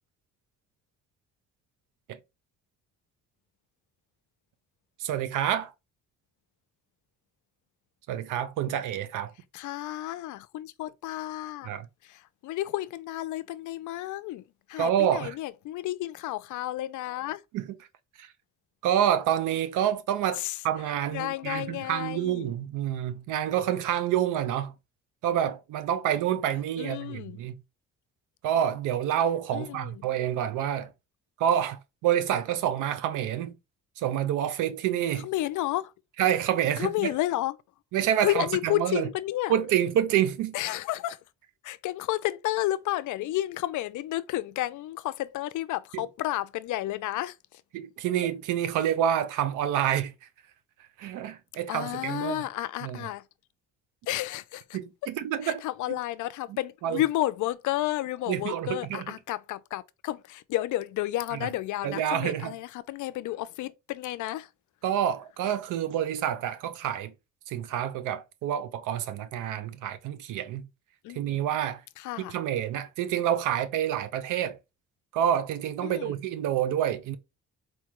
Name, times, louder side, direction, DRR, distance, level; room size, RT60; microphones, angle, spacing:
voice 1, 5.0-5.7 8.1-9.3 11.7-11.9 14.8-15.3 17.5-17.6 18.2-18.3 18.8-24.7 25.2-27.5 28.4-30.9 31.4-33.6 34.0-35.3 36.2-37.1 37.9-39.1 39.5-40.5 47.7-50.1 51.0-52.4 52.8-53.0 54.7-55.6 56.5-57.0 58.3-59.1 61.8-62.5 64.8-67.1 67.5-70.7 71.1-71.8 72.3-74.6 75.1-77.2, right 10 dB, 90° right, 0.7 m, -28 dB
voice 2, 9.5-11.7 12.0-17.4 20.4-20.6 21.1-22.5 26.8-27.4 29.5-30.1 35.2-35.9 36.8-37.6 38.2-39.5 40.5-41.2 41.6-47.6 51.7-53.2 54.1-54.8 55.4-64.5 71.0-71.4 72.0-72.4 75.8-76.2, left 15 dB, 75° left, 0.5 m, -31 dB
4.4 x 2.2 x 3.0 m
cardioid pair, 90°, 30 cm